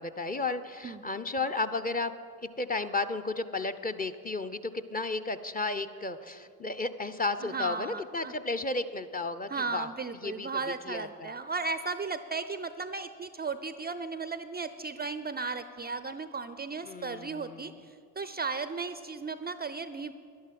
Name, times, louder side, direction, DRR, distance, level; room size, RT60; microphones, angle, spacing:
voice 1, 0.0-2.1 2.5-9.9 10.2-10.5 10.9-11.3 16.9-17.7, left 3 dB, 20° left, 8 dB, 0.7 m, -33 dB
voice 2, 7.4-8.3 9.5-20.1, right 4 dB, 20° right, 13 dB, 0.5 m, -35 dB
11.0 x 11.0 x 7.6 m, 2.4 s
hypercardioid pair, 60°, 44 cm